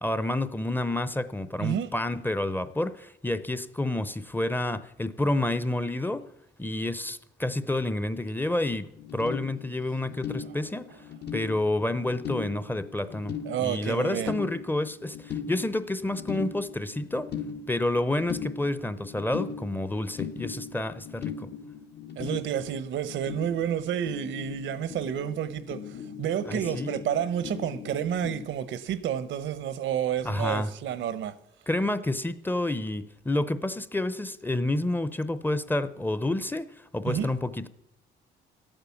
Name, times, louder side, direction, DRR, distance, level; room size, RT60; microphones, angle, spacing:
voice 1, 0.0-6.3 6.6-10.9 11.3-17.3 17.7-21.5 26.5-27.0 30.2-30.7 31.7-37.7, left 1 dB, 10° left, 0.7 m, -29 dB
sound 1, 8.9-28.5, left 7 dB, 55° left, 1.3 m, -39 dB
voice 2, 13.4-14.3 22.2-31.3 37.1-37.3, right 9 dB, 75° right, 0.9 m, -30 dB
12.5 x 9.0 x 7.0 m
cardioid pair, 90°, 20 cm